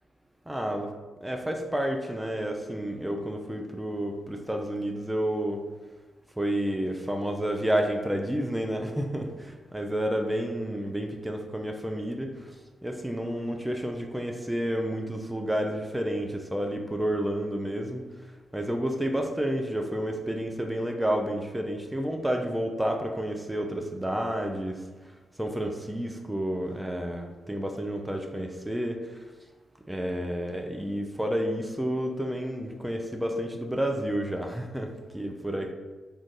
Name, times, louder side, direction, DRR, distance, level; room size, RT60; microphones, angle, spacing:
voice 1, 0.5-0.9 1.2-5.6 6.4-12.5 12.8-18.0 18.5-24.8 25.4-29.0 29.9-35.7, equal, 10° right, 3 dB, 0.4 m, -30 dB
2.5 x 2.3 x 3.8 m, 1.3 s
hypercardioid pair, 40°, 0 cm